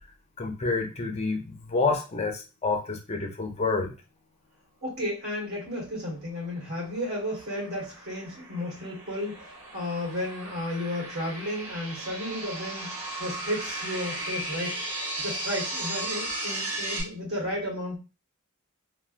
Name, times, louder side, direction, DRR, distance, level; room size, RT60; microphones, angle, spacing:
voice 1, 0.4-3.9, left 3 dB, 30° left, 3 dB, 0.5 m, -28 dB
voice 2, 4.8-12.9 13.2-14.8 15.2-18.0, left 1 dB, 50° right, -4 dB, 1.5 m, -33 dB
sound 1, 6.2-17.0, right 1 dB, 85° right, 1.1 m, -36 dB
3.3 x 2.2 x 2.5 m, 0.30 s
head